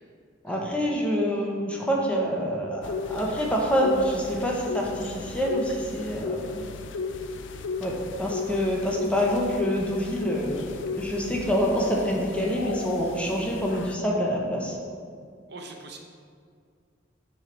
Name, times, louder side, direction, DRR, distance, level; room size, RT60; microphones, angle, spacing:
voice 1, 0.4-6.6 7.8-7.9 8.2-14.8, equal, 5° left, -2 dB, 0.8 m, -26 dB
sound 1, 2.8-14.0, left 4 dB, 70° left, 0.4 m, -34 dB
voice 2, 15.5-16.0, right 3 dB, 60° right, 3 dB, 0.7 m, -42 dB
7.2 x 3.4 x 5.1 m, 2.1 s
head